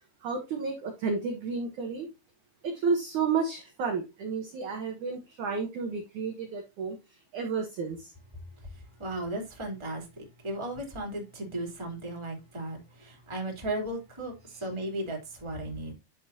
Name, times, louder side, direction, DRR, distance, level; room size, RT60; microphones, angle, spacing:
voice 1, 0.2-2.1 2.6-8.1 14.5-14.6, right 5 dB, 65° right, 2.0 m, -32 dB
voice 2, 9.0-14.3 14.6-15.9, right 1 dB, 10° right, 2.2 m, -35 dB
11.0 x 5.4 x 2.7 m
omnidirectional pair, 5.3 m